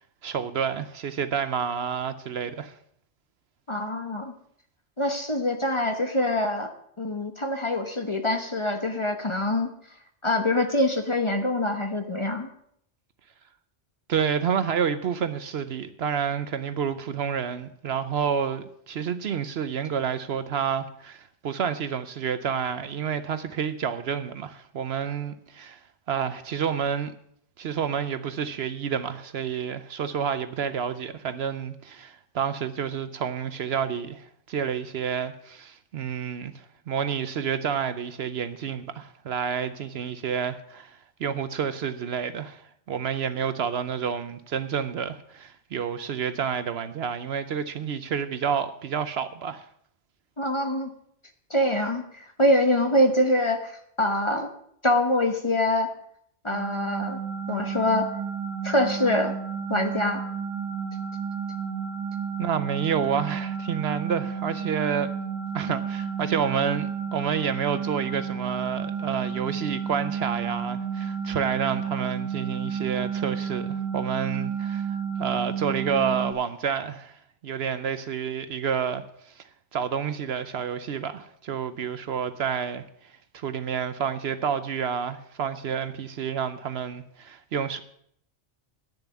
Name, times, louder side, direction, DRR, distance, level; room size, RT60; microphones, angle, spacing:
voice 1, 0.0-2.7 14.1-25.8 26.1-27.1 27.6-49.7 62.4-65.1 65.5-79.4 79.7-87.8, right 7 dB, 65° right, 0.9 m, -29 dB
voice 2, 3.7-4.3 5.0-6.7 7.0-9.7 10.2-12.5 50.4-50.9 51.5-54.5 54.8-55.9 56.4-57.2 57.5-58.1 58.6-59.3 59.7-60.2, left 1 dB, 25° left, 1.0 m, -24 dB
sound 1, 56.5-76.3, right 6 dB, 40° right, 1.6 m, -31 dB
10.0 x 7.0 x 8.1 m
omnidirectional pair, 1.2 m